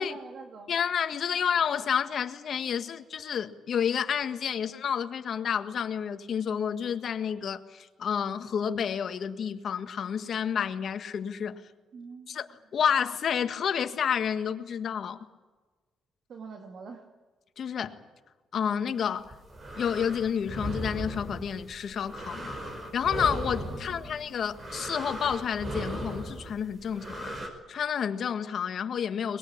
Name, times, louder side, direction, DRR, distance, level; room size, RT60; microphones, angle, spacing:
voice 1, 0.0-0.7 11.9-12.4 16.3-17.0 23.8-24.4, right 5 dB, 60° right, 2.3 m, -45 dB
voice 2, 0.7-11.6 12.3-15.3 17.6-18.0 18.5-19.3 19.8-22.6 22.9-27.3 27.7-29.4, left 7 dB, 60° left, 1.7 m, -30 dB
sound 1, 19.1-27.5, right 1 dB, 35° right, 5.7 m, -37 dB
22.5 x 21.0 x 8.8 m
cardioid pair, 90°, 0 cm